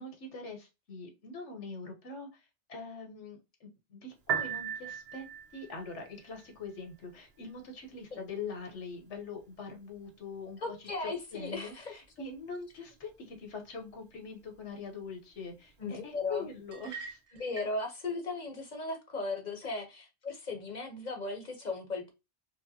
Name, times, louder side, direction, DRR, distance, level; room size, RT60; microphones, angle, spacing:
voice 1, 0.0-5.3 5.5-17.2, left 4 dB, 80° left, 1.4 m, -43 dB
Piano, 4.2-17.2, right 8 dB, 60° right, 1.0 m, -44 dB
voice 2, 10.6-12.0 15.8-16.5 17.4-22.1, left 3 dB, 40° left, 0.9 m, -37 dB
sound 1, 16.7-17.8, right 4 dB, 75° right, 1.4 m, -45 dB
4.7 x 2.2 x 2.7 m
omnidirectional pair, 1.2 m